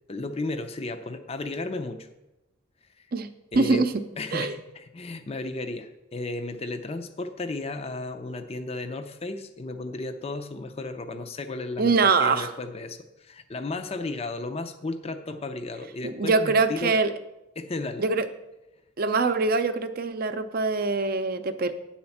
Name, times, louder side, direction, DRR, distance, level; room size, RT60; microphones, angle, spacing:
voice 1, 0.1-2.1 3.0-3.1 3.5-3.9 4.2-17.0 17.6-18.1, left 2 dB, 30° left, 8 dB, 0.5 m, -34 dB
voice 2, 3.5-4.0 4.3-4.5 11.8-12.5 16.0-17.1 18.0-18.3 19.0-21.7, right 4 dB, 50° right, 9 dB, 0.6 m, -23 dB
9.6 x 4.3 x 7.1 m, 0.95 s
head